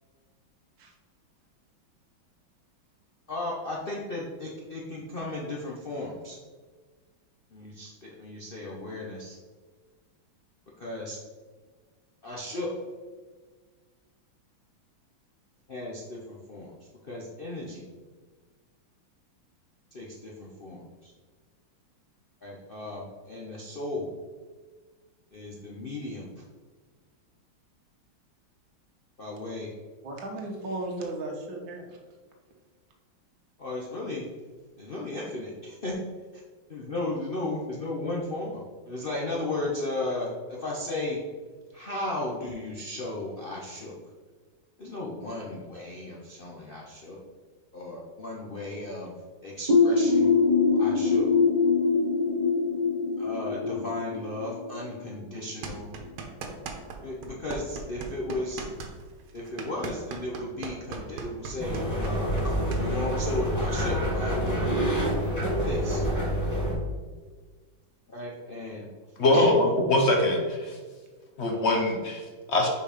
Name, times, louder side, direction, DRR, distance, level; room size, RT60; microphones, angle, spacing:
voice 1, 3.3-6.4 7.5-9.4 10.8-11.2 12.2-12.7 15.7-16.7 17.0-17.8 19.9-21.1 22.4-24.1 25.3-26.3 29.2-29.7 33.6-34.2 34.8-35.9 36.7-41.2 41.7-43.9 44.8-47.2 47.7-49.1 49.4-50.4 50.8-51.3 53.2-55.9 57.0-58.6 59.3-62.2 62.8-64.8 65.6-66.0 68.1-68.9 69.3-69.5, left 2 dB, 80° left, -4 dB, 0.5 m, -35 dB
voice 2, 30.0-32.0, right 2 dB, 70° right, 1 dB, 1.7 m, -35 dB
sound 1, 49.7-55.2, left 4 dB, 35° right, 0.6 m, -23 dB
sound 2, 55.6-57.0 57.2-62.8, right 5 dB, 85° right, 1.7 m, -38 dB
sound 3, 61.6-66.7, equal, 10° left, 1.7 m, -27 dB
voice 3, 69.2-70.8 71.4-72.7, left 1 dB, 50° left, 1 dB, 0.8 m, -23 dB
5.2 x 4.7 x 5.0 m, 1.4 s
omnidirectional pair, 2.2 m